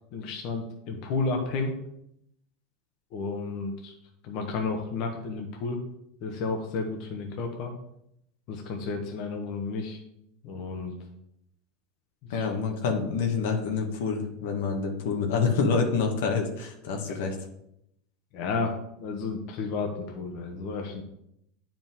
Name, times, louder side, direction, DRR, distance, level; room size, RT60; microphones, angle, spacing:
voice 1, 0.1-1.7 3.1-3.9 4.2-5.8 6.2-7.7 8.5-10.0 10.4-10.9 12.3-12.5 17.1-17.2 18.3-18.7 19.0-21.0, left 4 dB, 55° left, 3 dB, 1.2 m, -32 dB
voice 2, 12.3-17.4, left 5 dB, 75° left, 3 dB, 1.4 m, -27 dB
9.0 x 5.2 x 3.6 m, 0.77 s
supercardioid pair, 120°, 0 cm